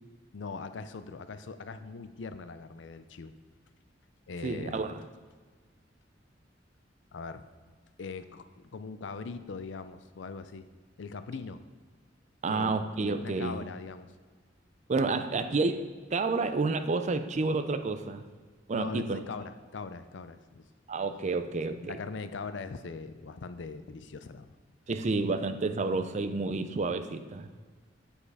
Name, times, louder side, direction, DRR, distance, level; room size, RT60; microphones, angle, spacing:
voice 1, 0.3-3.3 4.3-4.9 7.1-7.4 8.0-10.7 11.0-11.6 12.5-12.8 13.2-14.1 18.7-20.7 21.7-24.5, left 4 dB, 70° left, 11 dB, 0.5 m, -41 dB
voice 2, 4.4-5.0 12.4-13.6 14.9-18.2 18.7-19.2 20.9-22.0 24.9-27.5, right 3 dB, 40° right, 10 dB, 0.5 m, -30 dB
8.5 x 5.3 x 4.8 m, 1.5 s
head